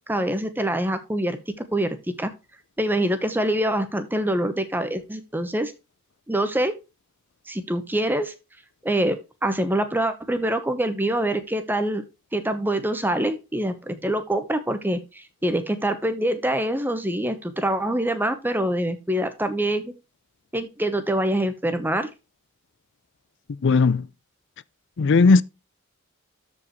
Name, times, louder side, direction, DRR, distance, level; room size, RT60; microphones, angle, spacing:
voice 1, 0.1-1.4 1.7-2.3 2.8-5.7 6.3-6.7 7.5-8.3 8.8-12.0 12.3-19.9 20.5-22.1, right 1 dB, 10° right, 0.9 m, -25 dB
voice 2, 23.5-24.1 25.0-25.4, left 4 dB, 65° left, 0.5 m, -17 dB
13.0 x 5.1 x 3.1 m
head